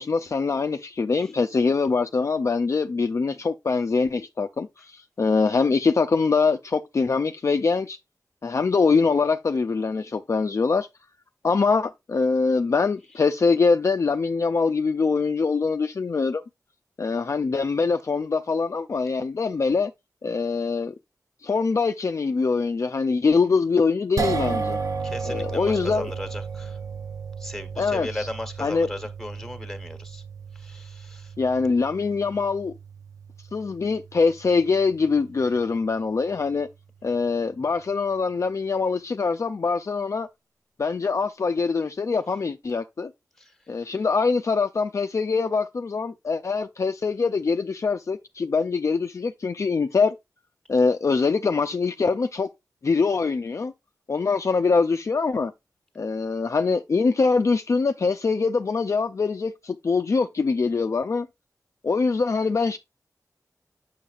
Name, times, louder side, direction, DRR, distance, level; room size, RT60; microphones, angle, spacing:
voice 1, 0.0-8.0 8.4-10.9 11.4-16.4 17.0-19.9 20.2-20.9 21.4-24.8 25.3-26.1 27.8-28.3 28.6-28.9 31.4-32.7 33.5-36.7 37.0-40.3 40.8-43.1 43.7-50.2 50.7-52.5 52.8-53.7 54.1-55.5 56.0-61.3 61.8-62.8, left 4 dB, 50° left, 0.4 m, -23 dB
sound 1, 24.2-36.5, right 5 dB, 60° right, 0.7 m, -34 dB
voice 2, 25.0-26.8 27.4-30.2 30.5-31.3 43.4-43.9, left 1 dB, 5° left, 1.4 m, -37 dB
6.9 x 6.4 x 2.4 m
wide cardioid pair, 75°, 7 cm